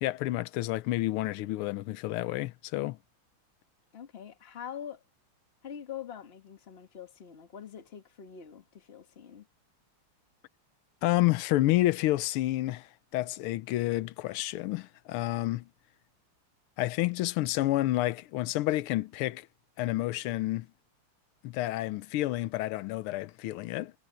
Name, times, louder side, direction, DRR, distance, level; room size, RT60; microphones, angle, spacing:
voice 1, 0.0-3.0 11.0-15.7 16.8-19.5 19.8-20.7 21.4-23.9, left 17 dB, 85° left, 1.6 m, -29 dB
voice 2, 3.9-5.0 5.6-9.5, left 9 dB, 35° left, 1.4 m, -44 dB
omnidirectional pair, 2.4 m